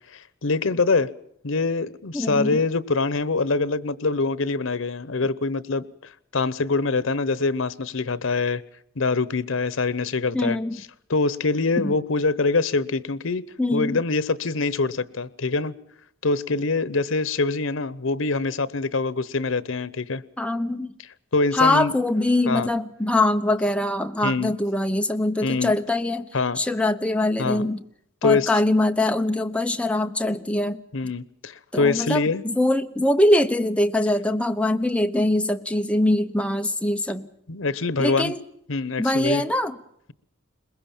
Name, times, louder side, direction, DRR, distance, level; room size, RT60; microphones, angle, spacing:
voice 1, 0.1-1.1 1.4-5.8 6.3-8.6 9.0-10.6 11.1-13.4 13.7-15.7 16.2-20.2 21.3-21.9 22.5-22.7 24.2-24.5 25.4-25.7 26.3-26.6 27.4-27.6 28.2-28.5 30.9-32.4 37.5-38.3 38.7-39.4, left 3 dB, 85° left, 0.9 m, -24 dB
voice 2, 2.1-2.6 10.3-10.8 11.8-11.9 13.6-14.0 20.4-20.9 21.5-26.3 26.6-27.8 28.2-30.8 31.7-37.3 38.0-38.4 39.0-39.8, left 1 dB, 5° left, 1.0 m, -23 dB
22.0 x 21.0 x 7.2 m
head